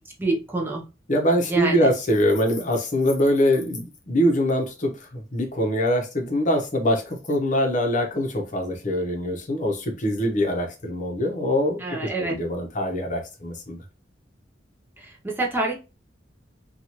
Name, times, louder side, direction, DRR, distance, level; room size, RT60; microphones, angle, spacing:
voice 1, 0.2-0.8 1.5-1.9 11.8-12.3 15.0-15.7, right 2 dB, 10° right, 0 dB, 0.5 m, -26 dB
voice 2, 1.1-11.8 12.2-13.8, equal, 45° left, 3 dB, 0.8 m, -23 dB
2.8 x 2.3 x 2.9 m, 0.29 s
head